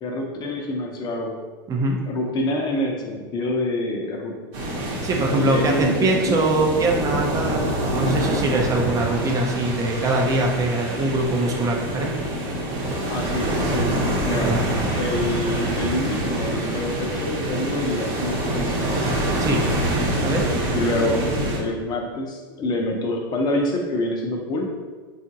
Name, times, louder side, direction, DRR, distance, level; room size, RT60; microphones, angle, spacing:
voice 1, 0.0-1.3 2.1-4.3 5.1-6.4 13.1-13.9 14.2-14.5 15.0-18.8 20.7-21.2 21.6-24.7, left 1 dB, 35° left, 1 dB, 0.6 m, -26 dB
voice 2, 1.7-2.0 5.0-12.1 14.4-14.6 19.4-19.6 20.2-20.5, right 2 dB, 25° right, 1 dB, 0.5 m, -22 dB
sound 1, 4.5-21.6, right 1 dB, 60° right, 0.9 m, -25 dB
3.6 x 2.4 x 2.7 m, 1.4 s
supercardioid pair, 115°, 12 cm